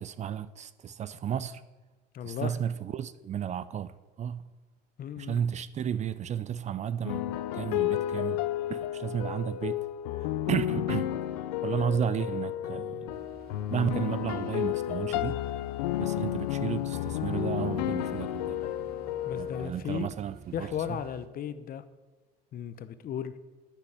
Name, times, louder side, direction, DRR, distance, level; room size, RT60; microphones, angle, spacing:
voice 1, 0.0-1.6 2.2-4.5 5.2-8.4 8.7-9.8 10.2-11.1 11.6-13.1 13.7-15.4 16.0-18.6 19.3-21.0, right 8 dB, 35° right, 0.5 m, -33 dB
voice 2, 2.1-2.6 5.0-5.4 19.2-20.1 20.5-21.8 22.5-23.3, left 9 dB, 45° left, 0.9 m, -35 dB
sound 1, 7.0-19.7, left 13 dB, 85° left, 0.6 m, -32 dB
sound 2, 13.1-21.3, right 5 dB, 50° right, 1.1 m, -52 dB
9.8 x 9.1 x 7.2 m
supercardioid pair, 95°, 21 cm